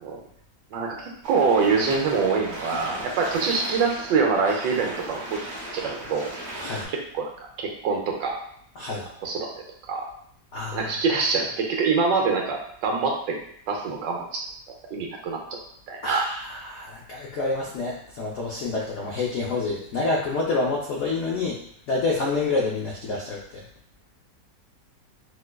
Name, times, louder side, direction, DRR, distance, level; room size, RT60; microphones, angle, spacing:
voice 1, 0.7-5.4 5.7-6.3 6.9-7.3 7.6-8.4 9.2-9.5 9.9-10.1 10.7-13.4 13.7-14.5 14.9-15.4 15.9-16.3, right 4 dB, 80° right, 0 dB, 1.3 m, -25 dB
sound 1, 1.2-6.8, right 1 dB, 45° right, 0.9 m, -36 dB
voice 2, 8.8-9.1 10.5-10.9 16.0-21.6 21.9-23.6, left 3 dB, 90° left, -4 dB, 0.6 m, -28 dB
4.6 x 2.2 x 2.2 m, 0.68 s
omnidirectional pair, 2.0 m